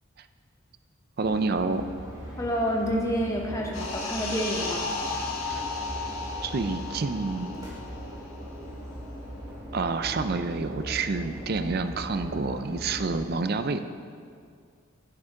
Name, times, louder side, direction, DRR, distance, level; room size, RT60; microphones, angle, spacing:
sound 1, 1.2-13.2, equal, 20° right, 2.4 m, -40 dB
voice 1, 1.2-1.9 5.5-5.6 6.4-7.5 9.7-13.8, right 4 dB, 45° right, 10 dB, 0.4 m, -28 dB
voice 2, 2.4-4.9, equal, 15° left, -1 dB, 1.0 m, -28 dB
sound 2, 3.7-8.8 9.1-9.3, left 3 dB, 75° left, 1.5 m, -34 dB
10.5 x 9.5 x 3.7 m, 2.2 s
head